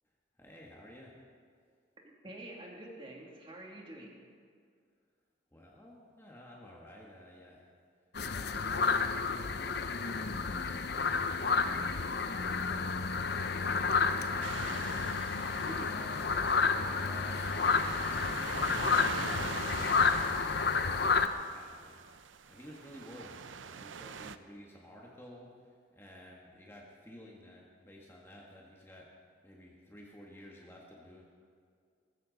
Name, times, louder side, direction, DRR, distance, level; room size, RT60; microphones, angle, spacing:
voice 1, 0.4-1.2 5.5-7.7 8.3-9.5 10.0-10.3 10.9-11.3 12.9-14.9 15.7-20.2 20.9-22.0 22.5-29.1 29.4-31.2, equal, 15° left, -3 dB, 1.6 m, -53 dB
voice 2, 2.0-4.3 15.7-16.0, right 1 dB, 30° right, -2 dB, 2.7 m, -47 dB
sound 1, 8.2-21.3, left 5 dB, 55° left, 0.7 m, -30 dB
sound 2, 14.4-24.4, right 6 dB, 90° right, 0.6 m, -44 dB
20.0 x 15.0 x 4.1 m, 2.2 s
head